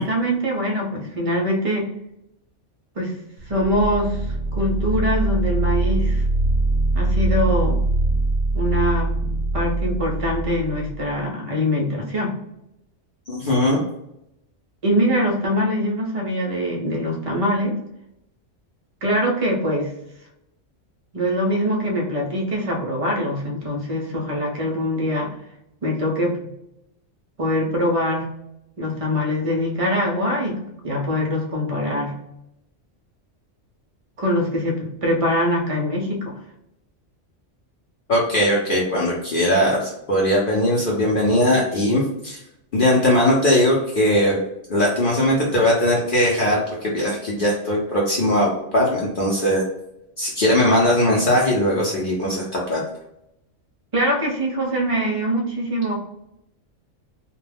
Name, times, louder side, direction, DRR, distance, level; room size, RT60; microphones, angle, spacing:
voice 1, 0.0-1.9 3.0-3.2 3.5-4.2 4.5-6.2 6.9-7.8 8.5-12.3 14.8-17.8 19.0-19.9 21.1-25.3 25.8-26.4 27.4-28.2 28.8-30.6 30.8-32.2 34.2-36.3 53.9-55.9, equal, 50° right, -1 dB, 0.4 m, -23 dB
sound 1, 3.4-11.2, right 2 dB, 65° right, 0.8 m, -23 dB
voice 2, 13.3-13.8 38.1-42.4 42.7-44.4 44.7-49.6 50.2-52.8, left 1 dB, 55° left, -4 dB, 0.6 m, -19 dB
2.3 x 2.1 x 3.3 m, 0.82 s
omnidirectional pair, 1.3 m